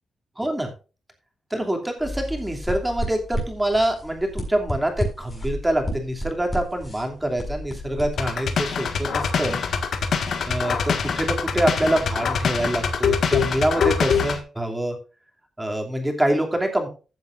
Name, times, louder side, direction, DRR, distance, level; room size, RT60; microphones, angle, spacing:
voice 1, 0.4-0.7 1.5-9.6 10.5-15.0 15.6-16.9, right 1 dB, 10° right, 3 dB, 2.8 m, -25 dB
sound 1, 2.0-8.6, equal, 20° left, 6.2 m, -32 dB
sound 2, 8.2-14.4, left 6 dB, 65° left, 1.7 m, -24 dB
15.0 x 7.9 x 2.6 m, 0.33 s
cardioid pair, 120°, 0 cm